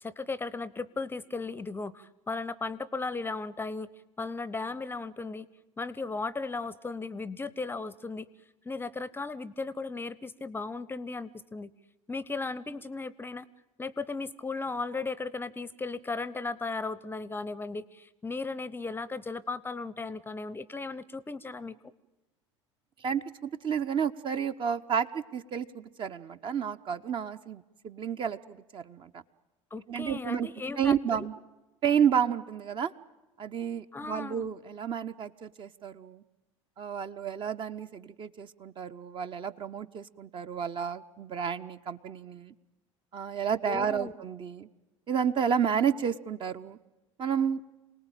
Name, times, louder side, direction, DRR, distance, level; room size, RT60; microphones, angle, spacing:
voice 1, 0.0-3.9 4.2-5.5 5.8-8.3 8.6-11.7 12.1-13.5 13.8-21.8 29.7-31.3 33.9-34.5 43.7-44.1, left 3 dB, 15° left, 20 dB, 0.8 m, -36 dB
voice 2, 23.0-29.2 29.9-30.5 30.8-31.3 31.8-32.9 33.4-36.2 36.8-42.5 43.1-44.7 45.1-46.8 47.2-47.6, right 7 dB, 30° right, 10 dB, 0.9 m, -31 dB
27.5 x 19.0 x 9.0 m, 1.1 s
figure-of-eight pair, 70°, 16 cm